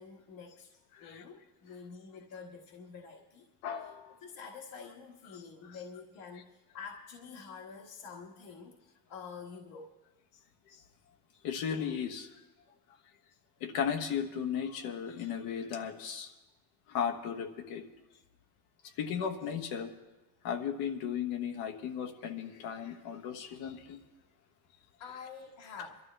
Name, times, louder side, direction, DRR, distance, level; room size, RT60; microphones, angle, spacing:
voice 1, 0.0-3.5 3.8-3.9 4.2-10.0 18.8-19.0 25.0-26.0, left 5 dB, 65° left, -1 dB, 1.5 m, -48 dB
voice 2, 0.9-1.2 3.6-4.2 10.7-10.8 11.4-12.3 13.6-16.3 16.9-17.8 19.0-19.9 20.4-24.0, left 7 dB, 85° left, 6 dB, 1.4 m, -35 dB
23.5 x 12.5 x 3.3 m, 1.1 s
cardioid pair, 140°, 37 cm